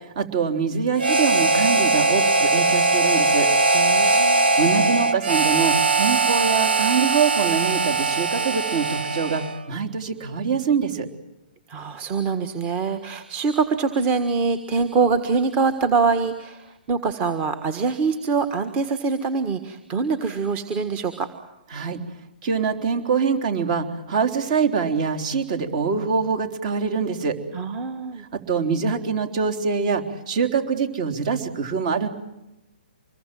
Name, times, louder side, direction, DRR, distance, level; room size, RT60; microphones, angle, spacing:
voice 1, 0.2-3.5 4.6-11.1 21.7-22.0 22.4-27.4 28.3-32.1, right 5 dB, 45° right, 6 dB, 3.7 m, -24 dB
Harmonica, 1.0-9.6, right 3 dB, 85° right, 2.2 m, -20 dB
voice 2, 3.7-4.5 11.7-21.3 27.5-28.2, right 4 dB, 25° right, 9 dB, 1.6 m, -24 dB
26.0 x 22.0 x 7.8 m, 0.95 s
hypercardioid pair, 140°, 5 cm